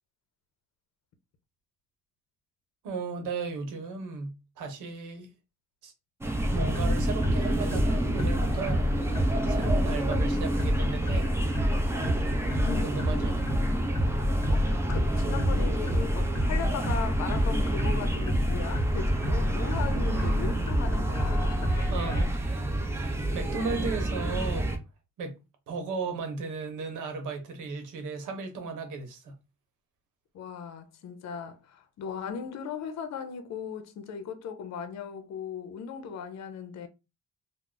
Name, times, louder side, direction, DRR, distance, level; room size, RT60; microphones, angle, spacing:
voice 1, 2.8-5.3 5.8-5.9 6.5-8.8 9.5-11.3 12.8-13.4 21.9-24.7 25.2-25.4 25.7-29.3, right 4 dB, 85° right, 0.9 m, -35 dB
sound 1, 6.2-24.8, right 1 dB, 10° right, 0.6 m, -29 dB
sound 2, 6.4-22.2, left 1 dB, 10° left, 1.1 m, -29 dB
voice 2, 14.5-21.7 30.3-36.9, left 6 dB, 65° left, 0.6 m, -37 dB
2.3 x 2.1 x 3.8 m
cardioid pair, 90°, 30 cm